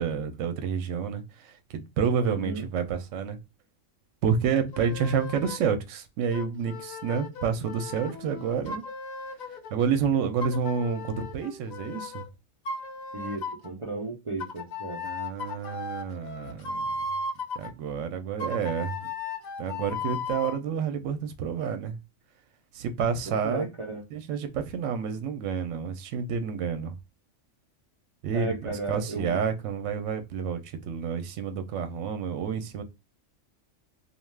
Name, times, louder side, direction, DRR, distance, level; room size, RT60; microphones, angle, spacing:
voice 1, 0.0-3.4 4.2-8.8 9.7-12.2 15.0-16.8 17.6-19.1 19.6-22.0 22.7-23.7 24.1-27.0 28.2-32.8, right 6 dB, 75° right, 0.9 m, -29 dB
voice 2, 2.2-2.6 13.1-15.0 23.3-24.0 28.3-29.4, right 2 dB, 50° right, 0.3 m, -34 dB
sound 1, 4.7-5.7 6.3-9.7 10.4-12.3 12.6-13.7 14.4-17.7 18.4-20.6, left 3 dB, 80° left, 0.4 m, -36 dB
2.4 x 2.2 x 3.2 m
omnidirectional pair, 1.3 m